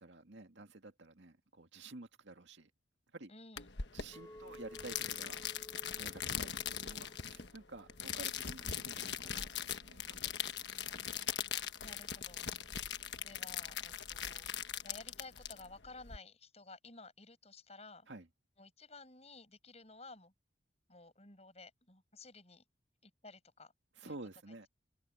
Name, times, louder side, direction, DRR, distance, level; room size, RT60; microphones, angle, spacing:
voice 1, 0.0-2.7 3.1-3.3 3.9-5.4 5.9-10.7 12.4-12.6 18.1-18.3 24.0-24.7, right 2 dB, 75° right, 2.1 m, -51 dB
voice 2, 3.3-3.7 11.8-12.5 13.2-14.5 14.8-18.1 18.6-20.3 20.9-22.6 23.0-23.7 24.0-24.2, left 3 dB, 35° left, 8.0 m, -54 dB
sound 1, 3.6-16.2, left 9 dB, 65° left, 1.3 m, -41 dB
Chink clink, 4.1-8.4 8.9-9.3, left 1 dB, 15° left, 0.8 m, -57 dB
head